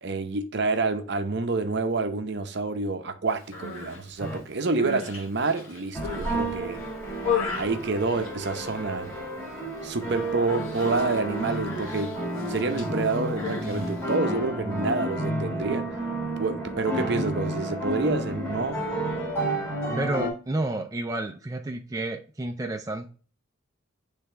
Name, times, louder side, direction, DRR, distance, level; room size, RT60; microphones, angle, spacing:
voice 1, 0.0-6.8 7.5-9.1 9.8-15.9 16.3-18.9, right 3 dB, 55° right, 0.7 m, -28 dB
Human voice, 3.4-4.0 4.6-6.4 6.8-8.8 9.1-9.5 9.8-10.0 10.5-14.1, left 5 dB, 85° left, 1.6 m, -35 dB
sound 1, 4.2-4.4 5.9-20.3, right 1 dB, 10° left, 2.0 m, -31 dB
voice 2, 20.0-23.1, right 2 dB, 15° right, 0.4 m, -30 dB
8.3 x 3.4 x 3.3 m
head